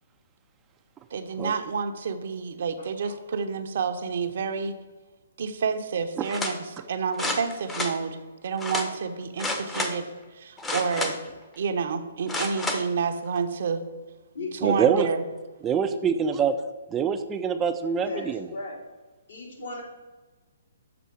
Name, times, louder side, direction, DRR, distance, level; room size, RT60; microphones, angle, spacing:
voice 1, 1.1-4.8 5.4-11.2 11.6-13.9 14.6-15.2, right 5 dB, 60° right, 7 dB, 0.7 m, -29 dB
voice 2, 2.8-3.1 14.3-14.8 18.0-18.8 19.3-19.8, left 1 dB, 70° left, -1 dB, 2.4 m, -36 dB
sound 1, 6.2-6.6 7.1-7.9 8.6-8.9 9.4-9.9 10.6-11.3 12.3-12.8 13.4-13.5, left 2 dB, 10° left, 0.8 m, -30 dB
voice 3, 14.6-15.1 15.6-16.6 16.9-18.5, right 7 dB, 20° right, 8 dB, 0.4 m, -25 dB
6.9 x 3.9 x 6.2 m, 1.2 s
hypercardioid pair, 135°, 0 cm